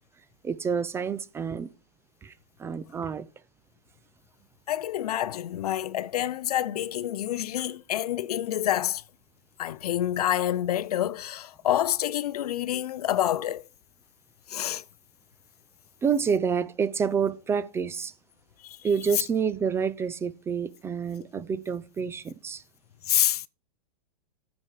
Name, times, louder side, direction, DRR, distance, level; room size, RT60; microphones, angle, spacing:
voice 1, 0.4-1.7 2.2-2.3 2.6-3.3 16.0-18.1 18.8-22.6, right 6 dB, 10° right, 0.4 m, -28 dB
voice 2, 4.7-9.0 9.6-13.6 14.5-14.8 18.6-18.9 23.0-23.4, left 12 dB, 70° left, 0.5 m, -27 dB
14.0 x 5.3 x 4.7 m
hypercardioid pair, 120°, 20 cm